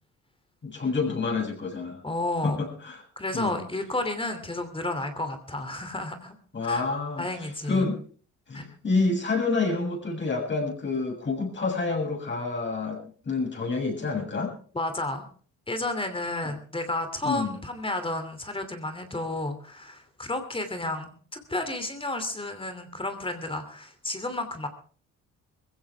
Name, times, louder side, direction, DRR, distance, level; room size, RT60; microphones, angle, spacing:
voice 1, 0.6-2.0 2.4-3.0 3.3-3.6 6.5-8.0 8.5-13.0 13.2-14.5 17.2-17.6, left 3 dB, 40° left, 1 dB, 7.3 m, -28 dB
voice 2, 2.0-2.6 3.2-6.3 6.6-6.8 7.2-7.9 8.5-8.6 14.7-15.3 15.7-24.7, left 2 dB, 20° left, 8 dB, 2.8 m, -31 dB
21.0 x 16.0 x 3.5 m, 0.43 s
cardioid pair, 90°, 30 cm